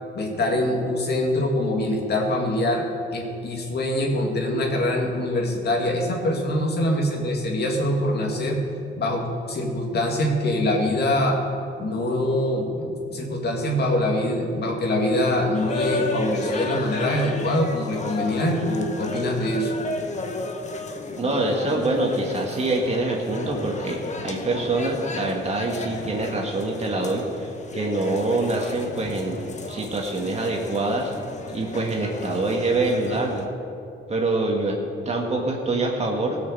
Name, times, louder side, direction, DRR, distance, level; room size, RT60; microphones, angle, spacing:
voice 1, 0.1-2.8 3.1-8.6 9.0-11.4 11.8-19.8, left 1 dB, 55° left, 1 dB, 2.3 m, -24 dB
sound 1, 15.5-33.5, left 3 dB, 35° left, 1.2 m, -34 dB
voice 2, 21.2-31.1 31.5-33.5 34.1-34.8 35.0-36.4, right 2 dB, 30° right, 0 dB, 1.7 m, -25 dB
16.5 x 6.3 x 6.9 m, 2.7 s
cardioid pair, 100°, 21 cm